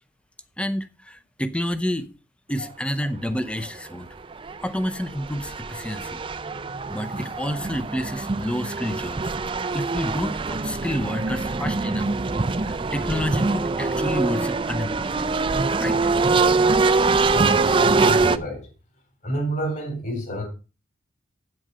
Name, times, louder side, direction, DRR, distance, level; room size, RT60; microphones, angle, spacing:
voice 1, 0.6-2.1 2.5-4.1 4.6-6.2 6.9-9.3 9.7-12.1 12.6-15.3 15.8-16.0, equal, 5° left, 0.7 m, -29 dB
sound 1, 3.6-3.7 4.2-18.4, right 3 dB, 25° right, 0.4 m, -23 dB
voice 2, 17.3-18.7 19.2-20.4, equal, 40° left, 3.9 m, -29 dB
8.8 x 7.9 x 5.6 m
head